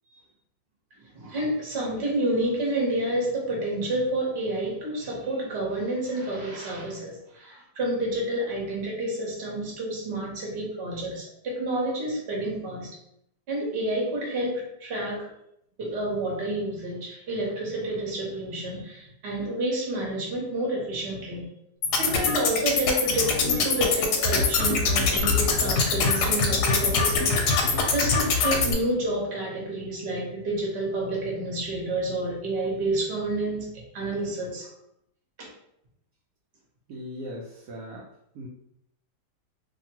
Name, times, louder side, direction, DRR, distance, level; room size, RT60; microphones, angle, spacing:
voice 1, 1.0-12.9 13.5-15.3 15.8-21.5 22.0-27.4 27.9-33.7 33.9-34.7 35.4-35.5, right 1 dB, 45° right, -2 dB, 1.0 m, -29 dB
sound 1, 21.8-28.7, left 4 dB, 75° left, 1.1 m, -23 dB
voice 2, 36.9-38.1 38.3-38.5, equal, 70° right, -4 dB, 0.9 m, -38 dB
2.8 x 2.5 x 2.8 m, 0.76 s
omnidirectional pair, 1.9 m